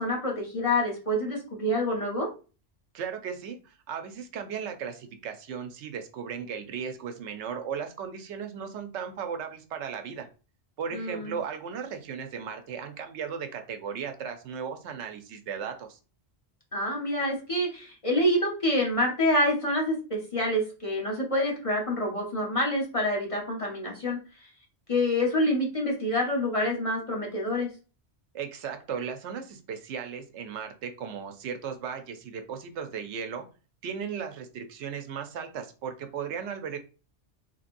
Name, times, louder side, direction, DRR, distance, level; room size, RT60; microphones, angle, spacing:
voice 1, 0.0-2.3 10.9-11.3 16.7-24.2 24.9-27.7, left 1 dB, 35° left, -2 dB, 0.8 m, -27 dB
voice 2, 2.9-10.3 10.8-16.0 28.3-33.4 33.8-36.8, right 7 dB, 85° right, 6 dB, 0.9 m, -36 dB
3.1 x 2.8 x 2.5 m, 0.34 s
omnidirectional pair, 1.2 m